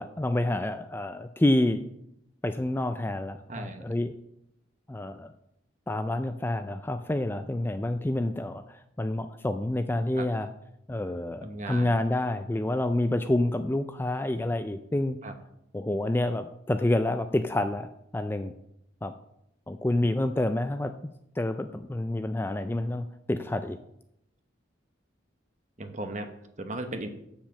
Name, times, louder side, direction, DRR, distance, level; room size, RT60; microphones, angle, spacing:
voice 1, 0.0-1.8 2.4-4.1 4.9-5.3 5.9-10.5 10.9-15.2 15.7-18.5 19.0-19.1 19.7-20.9 21.4-23.8, left 1 dB, 10° left, 9 dB, 0.3 m, -28 dB
voice 2, 3.5-3.8 10.2-10.3 11.4-11.9 15.2-15.3 25.8-26.3 26.6-27.1, right 2 dB, 40° right, 7 dB, 1.0 m, -36 dB
7.5 x 7.2 x 6.2 m, 0.79 s
head